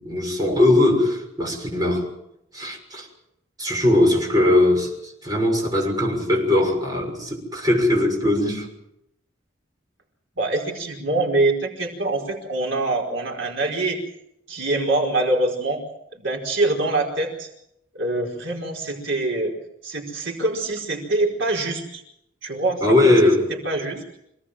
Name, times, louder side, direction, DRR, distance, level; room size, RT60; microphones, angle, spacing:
voice 1, 0.0-2.1 2.5-3.1 3.6-8.7 22.8-23.5, left 1 dB, 20° right, 0 dB, 6.6 m, -20 dB
voice 2, 10.4-14.0 14.5-15.8 16.1-17.5 17.9-19.5 19.8-22.0 22.4-23.1 23.6-24.0, right 2 dB, 70° right, 0 dB, 4.8 m, -24 dB
26.5 x 18.5 x 7.6 m, 0.79 s
head